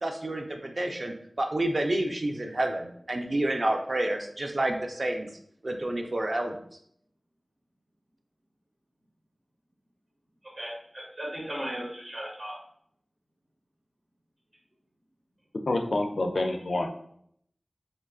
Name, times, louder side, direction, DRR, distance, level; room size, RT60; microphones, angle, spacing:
voice 1, 0.0-5.3 5.6-6.6, right 1 dB, 55° right, 3 dB, 0.3 m, -29 dB
voice 2, 10.6-12.5 16.3-16.5, equal, 85° right, -5 dB, 0.9 m, -36 dB
voice 3, 15.7-16.9, left 2 dB, 80° left, 4 dB, 0.4 m, -27 dB
2.8 x 2.3 x 3.5 m, 0.67 s
wide cardioid pair, 70°, 0 cm